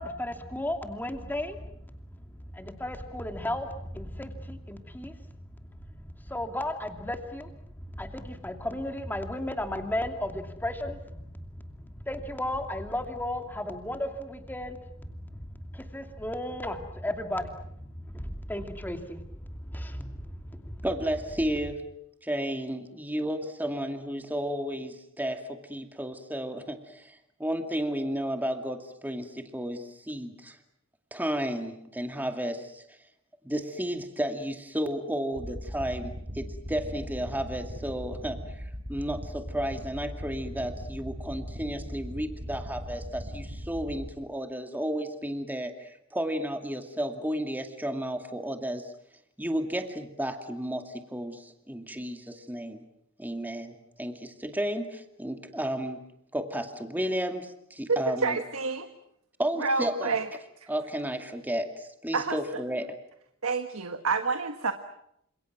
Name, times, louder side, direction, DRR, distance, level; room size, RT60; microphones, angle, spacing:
voice 1, 0.0-20.9, left 1 dB, 10° left, 5 dB, 2.6 m, -35 dB
voice 2, 20.8-21.9 22.2-30.6 31.1-32.8 33.4-48.9 49.4-52.8 53.2-56.0 56.3-58.4 59.4-60.1 60.7-62.9, equal, 10° right, 5 dB, 2.3 m, -33 dB
sound 1, 35.3-44.1, equal, 50° right, 6.5 m, -39 dB
voice 3, 57.9-58.9 59.6-60.3 60.6-60.7 62.1-62.4 63.4-64.7, right 4 dB, 75° right, 8 dB, 1.5 m, -28 dB
29.0 x 27.0 x 6.1 m, 0.74 s
head